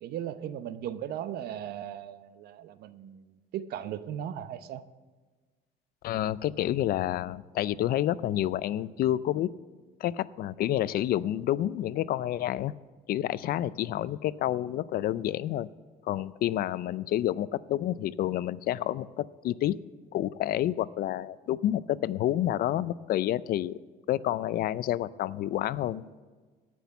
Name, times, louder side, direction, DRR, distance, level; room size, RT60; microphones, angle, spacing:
voice 1, 0.0-4.8, right 10 dB, 70° right, 13 dB, 0.7 m, -37 dB
voice 2, 6.0-9.5 10.0-12.7 13.1-15.7 16.1-19.8 20.1-23.8 24.1-26.2, left 13 dB, 65° left, 18 dB, 0.4 m, -29 dB
16.5 x 6.1 x 7.0 m, 1.4 s
cardioid pair, 110°, 17 cm